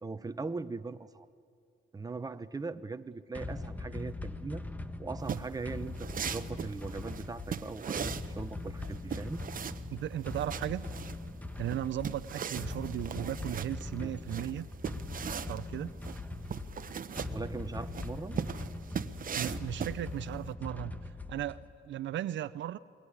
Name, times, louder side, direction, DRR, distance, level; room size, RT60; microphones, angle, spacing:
voice 1, 0.0-1.3 1.9-4.6 5.0-9.4 14.0-14.1 17.3-18.4, right 3 dB, 20° right, 9 dB, 1.0 m, -40 dB
sound 1, 3.3-21.8, left 2 dB, 10° left, 1.2 m, -41 dB
sound 2, 5.2-20.5, right 7 dB, 45° right, 1.1 m, -39 dB
voice 2, 9.9-10.9 11.6-14.7 15.5-15.9 19.3-22.8, right 12 dB, 70° right, 14 dB, 0.7 m, -36 dB
27.5 x 21.5 x 10.0 m, 2.3 s
cardioid pair, 90°, 20 cm